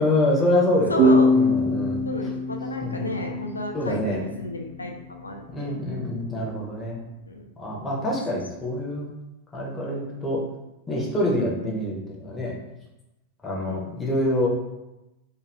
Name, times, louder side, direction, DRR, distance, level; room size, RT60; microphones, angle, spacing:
voice 1, 0.0-2.1 2.8-3.0 3.7-4.2 5.5-7.0 7.6-9.1 9.5-10.4 10.9-12.5 13.4-14.5, left 1 dB, 15° left, -3 dB, 0.8 m, -26 dB
voice 2, 0.9-1.4 2.1-5.7 7.3-7.5 11.6-11.8 13.6-13.8, left 2 dB, 80° left, 3 dB, 0.4 m, -32 dB
sound 1, 1.0-4.4, left 1 dB, 55° right, 0.5 m, -22 dB
2.4 x 2.4 x 3.3 m, 0.97 s
figure-of-eight pair, 90°, 0 cm